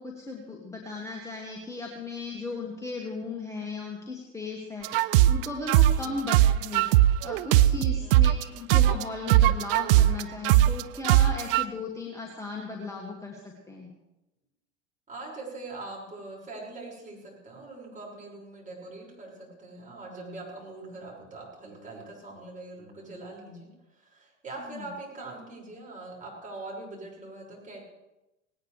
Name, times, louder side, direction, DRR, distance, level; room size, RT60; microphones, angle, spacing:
voice 1, 0.0-6.9 7.2-13.9 24.6-24.9, left 3 dB, 10° left, -1 dB, 2.1 m, -37 dB
sound 1, 4.8-8.4 8.7-11.6, right 14 dB, 45° right, 0.5 m, -20 dB
voice 2, 8.0-8.3 15.1-27.8, right 2 dB, 20° right, -2 dB, 6.2 m, -42 dB
18.5 x 18.5 x 3.4 m, 0.97 s
figure-of-eight pair, 80°, 38 cm